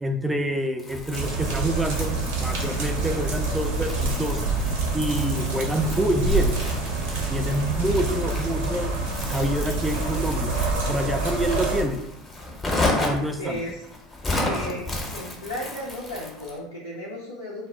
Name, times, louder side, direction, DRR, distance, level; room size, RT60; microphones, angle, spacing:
voice 1, 0.0-4.4 4.9-6.5 7.3-8.9 9.3-10.5 10.9-12.0 12.9-13.6, right 1 dB, 10° right, 6 dB, 0.3 m, -27 dB
Crumpling crinkling, 0.8-16.6, left 2 dB, 20° left, 0.7 m, -33 dB
sound 1, 1.1-11.8, right 2 dB, 70° right, 0.6 m, -27 dB
voice 2, 13.4-13.8 14.4-17.7, left 1 dB, 85° left, -6 dB, 0.4 m, -35 dB
2.1 x 2.0 x 3.4 m, 0.82 s
hypercardioid pair, 75°, 0 cm